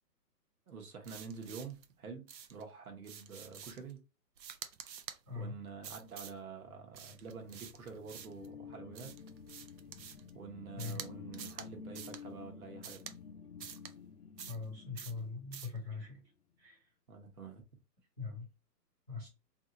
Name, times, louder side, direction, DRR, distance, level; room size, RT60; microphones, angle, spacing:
voice 1, 0.7-4.0 5.3-9.1 10.3-13.2 17.1-17.6, right 5 dB, 60° right, 1.1 m, -48 dB
sound 1, 1.0-1.9 2.3-2.6 3.0-3.9 4.4-5.2 5.8-6.4 6.9-8.5 8.9-10.3 10.8-11.1 11.3-11.7 11.9-12.2 12.8-13.2 13.6-13.9 14.4-14.7 15.0-15.2 15.5-15.8, right 8 dB, 90° right, 0.7 m, -48 dB
sound 2, 7.0-16.2, left 6 dB, 65° left, 0.7 m, -52 dB
voice 2, 14.5-16.2 16.6-16.8 18.2-18.5 19.1-19.3, left 4 dB, 15° right, 0.6 m, -41 dB
3.1 x 2.8 x 2.5 m
hypercardioid pair, 170°, 49 cm